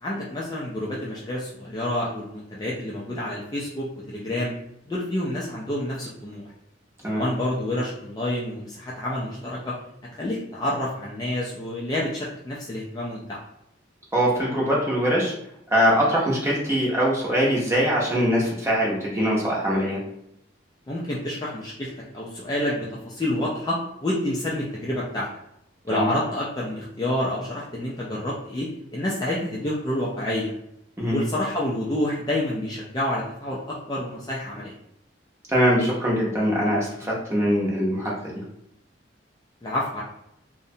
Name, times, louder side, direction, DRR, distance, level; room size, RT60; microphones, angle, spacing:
voice 1, 0.0-4.5 4.9-6.4 7.1-9.7 10.2-13.4 20.9-25.3 25.8-30.5 31.1-34.7 39.6-40.0, left 1 dB, 20° left, -5 dB, 0.3 m, -28 dB
voice 2, 14.1-15.3 15.7-20.0 25.9-26.1 31.0-31.2 35.5-38.4, equal, 15° right, -5 dB, 0.6 m, -22 dB
2.6 x 2.0 x 2.7 m, 0.79 s
head